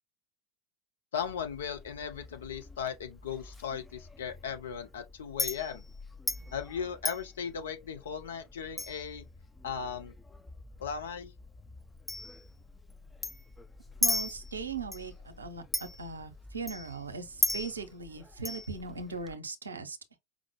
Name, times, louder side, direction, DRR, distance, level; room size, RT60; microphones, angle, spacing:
voice 1, 1.1-5.8 6.5-9.3 9.6-10.1 10.8-11.3, left 7 dB, 70° left, 0.6 m, -37 dB
Chink clink, 1.1-19.4, left 2 dB, 10° left, 0.4 m, -39 dB
voice 2, 14.0-20.0, right 4 dB, 80° right, 0.6 m, -39 dB
5.0 x 2.0 x 3.0 m
figure-of-eight pair, 80°, 0 cm